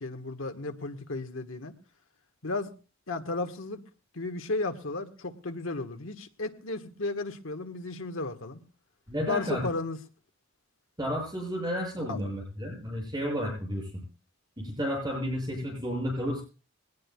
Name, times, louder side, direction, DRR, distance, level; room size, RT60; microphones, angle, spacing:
voice 1, 0.0-1.7 2.4-2.7 3.1-3.8 4.1-8.6 9.3-10.0 12.1-12.2, left 2 dB, 90° left, 1.5 m, -34 dB
voice 2, 9.1-9.6 11.0-13.9 14.6-16.4, equal, 20° right, 7.2 m, -32 dB
22.0 x 19.0 x 2.4 m
head